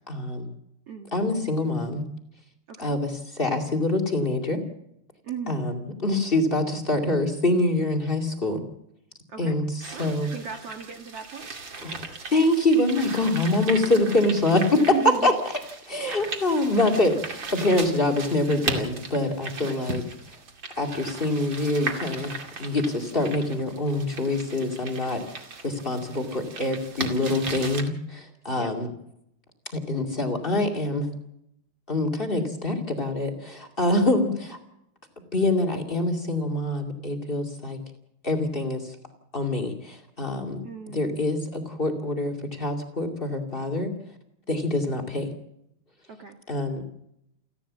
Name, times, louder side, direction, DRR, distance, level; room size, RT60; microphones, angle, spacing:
voice 1, 0.1-0.5 1.1-2.0 2.8-4.6 5.5-8.6 9.4-10.3 11.8-14.8 15.2-15.3 15.8-20.0 20.8-22.3 22.6-28.9 29.7-31.1 31.9-34.6 35.3-37.8 38.2-38.9 39.3-40.6 40.9-43.9 44.5-45.3 46.5-46.8, left 2 dB, 40° left, 2 dB, 0.7 m, -25 dB
voice 2, 5.2-5.7 9.3-9.6 9.9-11.5 14.7-15.3 19.6-19.8 28.6-28.7 40.6-41.2 46.1-46.4, right 8 dB, 70° right, 5 dB, 1.4 m, -35 dB
sound 1, 9.8-27.8, right 4 dB, 35° right, 2.0 m, -37 dB
29.5 x 12.5 x 7.4 m, 0.77 s
omnidirectional pair, 5.4 m